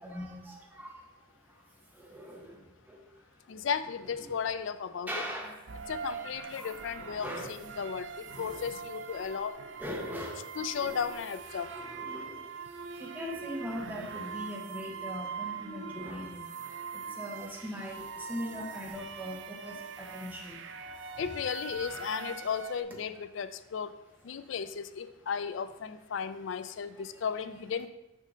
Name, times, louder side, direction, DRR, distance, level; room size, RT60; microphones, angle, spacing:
voice 1, 0.0-3.7 4.0-4.3 5.1-8.0 8.3-8.6 9.8-11.1 11.7-21.3 21.7-22.0 24.3-24.5 26.6-27.2, equal, 10° right, -3 dB, 1.1 m, -42 dB
voice 2, 3.5-5.1 5.9-9.5 10.6-11.7 16.0-16.1 21.2-23.9 24.2-27.9, left 6 dB, 65° left, 12 dB, 0.4 m, -35 dB
sound 1, 5.7-22.8, right 6 dB, 60° right, 0.4 m, -42 dB
6.3 x 5.5 x 3.8 m, 0.96 s
head